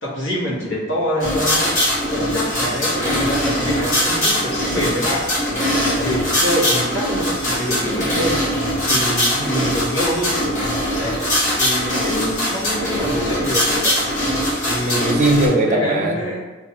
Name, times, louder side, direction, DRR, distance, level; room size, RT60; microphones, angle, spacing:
voice 1, 0.0-1.8 2.1-5.7 5.9-8.4 8.8-10.4 10.9-11.2 11.6-13.9 15.6-16.4, equal, 65° left, -5 dB, 1.2 m, -25 dB
sound 1, 1.2-15.5, equal, 40° left, 1.3 m, -21 dB
voice 2, 8.9-9.5 14.6-16.2, right 2 dB, 35° right, 1 dB, 0.5 m, -20 dB
5.1 x 2.3 x 2.9 m, 1.3 s
head